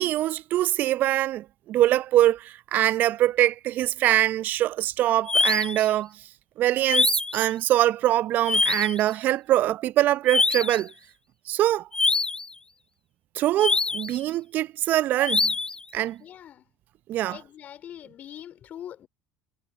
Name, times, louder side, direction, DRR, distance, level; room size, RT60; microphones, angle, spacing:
voice 1, 0.0-6.1 6.6-10.9 11.5-11.9 13.3-15.5 15.9-16.2 17.1-17.4, right 14 dB, 55° right, 0.7 m, -23 dB
sound 1, 5.3-5.8 6.9-7.4 8.5-9.0 10.3-10.8 11.9-12.5 13.6-14.2 15.2-15.8, left 3 dB, 20° left, 1.6 m, -24 dB
voice 2, 16.2-16.6 17.3-19.1, left 10 dB, 45° left, 4.2 m, -42 dB
hypercardioid pair, 65°, 4 cm